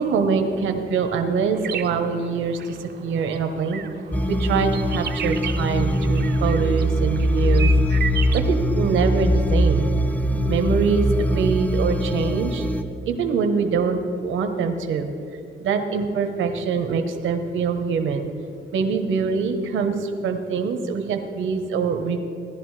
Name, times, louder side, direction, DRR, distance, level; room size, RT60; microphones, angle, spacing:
voice 1, 0.0-2.8 3.0-3.8 4.3-7.7 8.3-9.9 10.5-11.0 11.3-12.6 13.1-15.1 15.6-18.3 18.7-19.9 20.2-22.2, right 5 dB, 80° right, 6 dB, 1.0 m, -24 dB
sound 1, 1.6-8.4, right 8 dB, 55° right, 0.7 m, -34 dB
sound 2, 4.1-12.8, equal, 10° left, 0.5 m, -22 dB
16.5 x 10.5 x 3.2 m, 2.6 s
cardioid pair, 90°, 20 cm